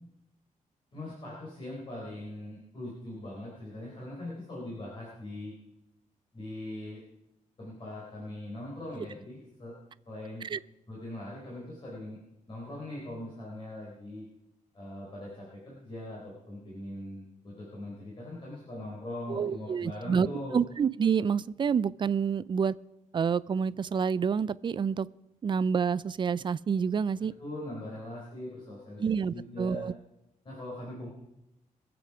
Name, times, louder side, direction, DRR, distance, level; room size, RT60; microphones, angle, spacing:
voice 1, 0.9-5.5 6.3-7.0 7.6-9.7 10.1-10.5 10.9-12.2 12.5-14.3 14.7-20.6 27.2-29.0 29.3-29.9 30.4-31.1, left 1 dB, 40° left, -5 dB, 4.3 m, -41 dB
voice 2, 19.3-20.3 20.5-22.8 23.1-25.1 25.4-27.3 29.0-29.9, right 6 dB, 35° right, 19 dB, 0.4 m, -28 dB
23.5 x 8.0 x 4.9 m, 0.89 s
wide cardioid pair, 145°, 14 cm